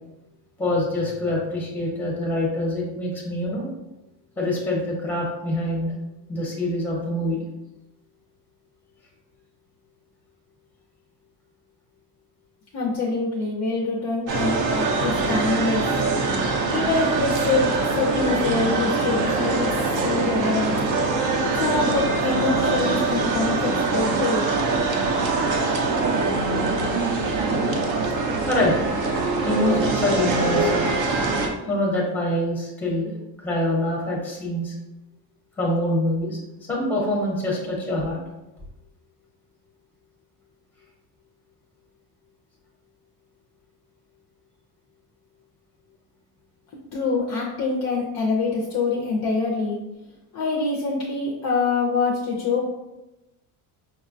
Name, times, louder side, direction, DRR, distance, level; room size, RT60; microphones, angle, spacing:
voice 1, 0.6-3.7 4.4-5.9 6.3-7.4 28.5-28.8 29.4-30.9 31.7-33.1 33.4-34.7 35.6-36.4 36.7-38.2, left 1 dB, 5° left, -3 dB, 0.7 m, -25 dB
voice 2, 12.7-16.0 16.7-20.7 21.4-24.5 46.9-49.8 50.3-52.6, left 3 dB, 40° left, -2 dB, 0.4 m, -25 dB
sound 1, 14.3-31.5, right 3 dB, 45° right, 0.5 m, -23 dB
5.4 x 2.1 x 2.5 m, 0.98 s
cardioid pair, 165°, 44 cm